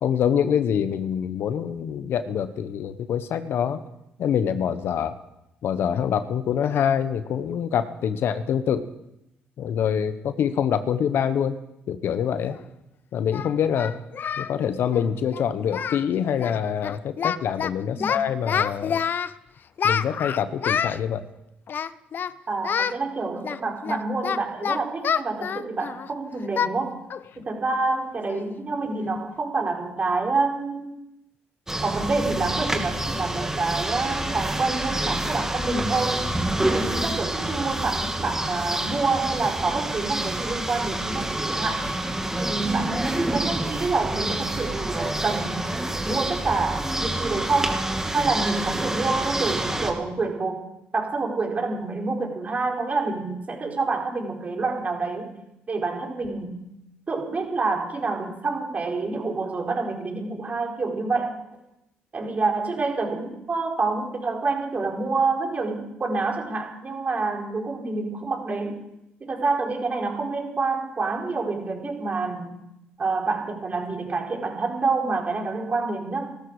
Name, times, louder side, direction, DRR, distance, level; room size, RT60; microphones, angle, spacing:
voice 1, 0.0-3.8 4.2-5.1 5.6-8.9 9.6-11.6 11.9-12.6 13.1-13.9 14.4-19.0 19.8-21.2 27.3-27.4, left 8 dB, 70° left, 12 dB, 1.1 m, -25 dB
Singing, 12.5-12.6 13.3-14.5 14.8-15.0 15.3-15.4 15.7-16.1 16.3-16.6 16.8-17.7 18.0-19.3 19.8-21.0 21.7-22.3 22.6-23.0 23.4-26.1 26.6-26.8 27.1-27.3 27.7-27.8 28.3-28.6, left 7 dB, 55° left, 0.6 m, -27 dB
voice 2, 22.5-27.0 27.4-30.9 31.8-36.3 36.6-41.9 42.4-45.7 46.0-50.6 50.9-55.3 55.7-56.6 57.1-61.3 62.1-68.8 69.2-72.6 73.0-76.3, right 3 dB, 40° right, 1 dB, 4.5 m, -27 dB
sound 1, 31.7-49.9, right 1 dB, 10° right, 2.6 m, -28 dB
18.5 x 13.5 x 4.9 m, 0.85 s
supercardioid pair, 70°, 4 cm